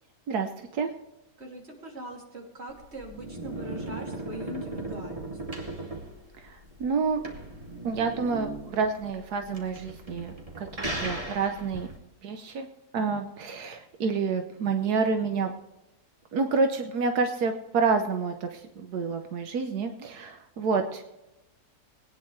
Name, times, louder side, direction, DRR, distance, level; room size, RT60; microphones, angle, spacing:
voice 1, 0.3-0.9 6.4-7.2 7.8-11.9 12.2-12.7 12.9-15.5 16.3-21.0, right 4 dB, 80° right, 5 dB, 1.5 m, -28 dB
voice 2, 1.4-5.4, right 1 dB, 45° right, 0 dB, 3.1 m, -41 dB
sound 1, 2.7-12.0, right 2 dB, 20° right, 2.5 m, -38 dB
21.5 x 9.7 x 3.2 m, 0.95 s
omnidirectional pair, 1.6 m